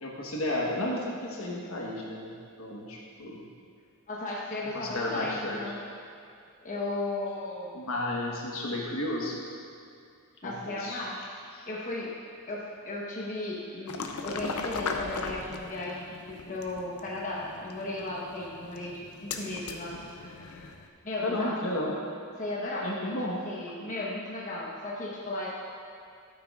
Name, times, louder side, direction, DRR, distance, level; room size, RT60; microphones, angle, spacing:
voice 1, 0.0-3.4 4.7-5.6 7.7-9.4 10.4-11.0 11.5-11.6 21.2-21.9 22.8-23.4, left 1 dB, 65° left, -3 dB, 1.4 m, -33 dB
voice 2, 4.1-5.8 6.6-7.7 10.4-12.1 12.5-20.0 21.0-21.6 22.4-23.1 23.4-25.5, left 2 dB, 35° left, -5 dB, 1.1 m, -35 dB
sound 1, 13.9-20.9, left 4 dB, 85° left, 0.6 m, -39 dB
11.5 x 9.5 x 2.5 m, 2.4 s
head